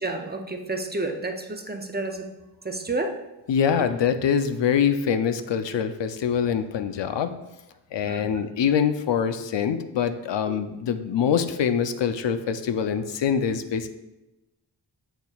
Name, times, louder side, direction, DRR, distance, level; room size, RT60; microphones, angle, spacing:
voice 1, 0.0-3.2 3.8-3.9 5.7-5.8 8.0-8.4 10.5-10.6, right 2 dB, 25° right, 4 dB, 0.5 m, -31 dB
voice 2, 3.5-7.4 7.9-13.9, left 7 dB, 70° left, 10 dB, 0.6 m, -24 dB
8.0 x 6.8 x 2.3 m, 1.0 s
wide cardioid pair, 160°, 44 cm